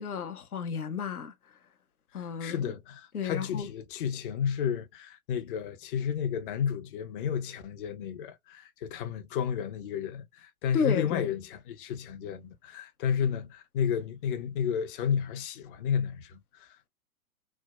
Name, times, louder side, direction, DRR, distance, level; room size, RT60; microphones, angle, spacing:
voice 1, 0.0-1.3 2.1-2.7 3.1-3.7 10.7-11.3, left 6 dB, 85° left, 0.7 m, -32 dB
voice 2, 2.2-16.9, left 8 dB, 40° left, 0.5 m, -32 dB
3.3 x 2.1 x 2.3 m
figure-of-eight pair, 110°, 44 cm